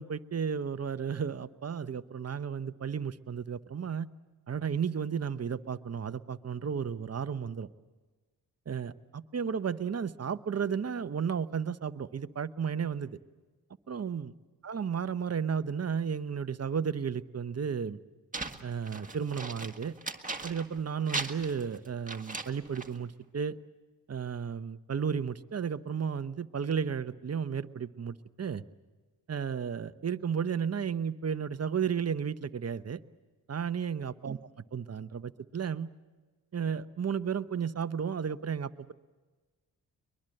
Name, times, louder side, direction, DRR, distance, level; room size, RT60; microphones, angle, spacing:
voice 1, 0.0-4.1 4.5-7.7 8.7-13.2 13.9-14.3 14.6-18.0 18.6-19.9 20.4-23.6 24.1-28.6 29.3-33.0 33.5-34.4 34.7-35.9 36.5-38.9, right 7 dB, 35° right, 12 dB, 0.9 m, -33 dB
sound 1, 18.3-20.8 21.1-23.0, right 3 dB, 20° right, 1.8 m, -38 dB
23.0 x 21.5 x 7.8 m, 1.3 s
supercardioid pair, 50°, 42 cm